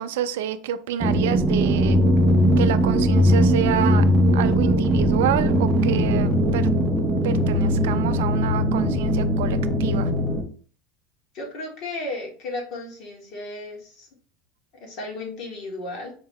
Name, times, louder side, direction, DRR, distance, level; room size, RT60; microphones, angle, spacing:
voice 1, 0.0-2.0 2.6-4.0 4.3-6.7 7.2-10.1, right 10 dB, 90° right, 11 dB, 0.3 m, -28 dB
sound 1, 1.0-10.4, equal, 10° right, 0.5 m, -20 dB
voice 2, 11.3-14.1 14.8-16.1, left 2 dB, 45° left, 0 dB, 1.2 m, -34 dB
4.5 x 2.1 x 3.4 m, 0.43 s
supercardioid pair, 165°, 0 cm